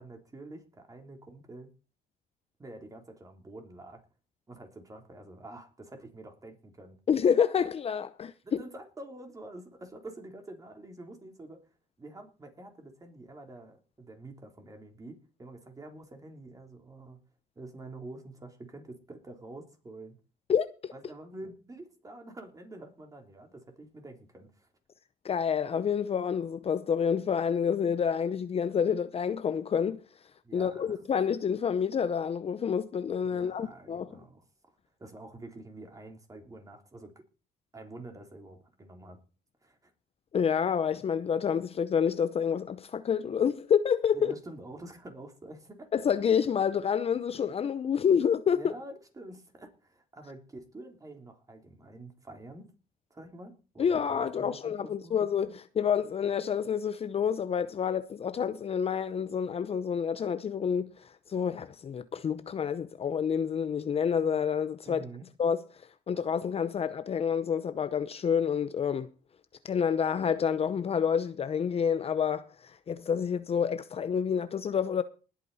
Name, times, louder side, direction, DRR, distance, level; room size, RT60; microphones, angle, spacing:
voice 1, 0.0-1.7 2.6-4.0 4.5-7.0 8.4-11.6 12.0-17.2 17.5-20.1 20.9-24.7 30.4-31.0 33.2-34.4 35.0-37.1 37.7-39.2 39.6-39.9 44.1-45.9 48.5-52.7 53.1-55.2 64.8-65.3, right 2 dB, 20° right, 3.5 m, -47 dB
voice 2, 7.1-8.6 20.5-20.9 25.2-30.0 30.5-34.1 40.3-44.3 45.9-48.7 53.8-65.0 65.4-65.6 66.1-69.1 69.6-75.0, left 7 dB, 35° left, 0.7 m, -28 dB
19.5 x 8.8 x 4.1 m
cardioid pair, 110°, 17 cm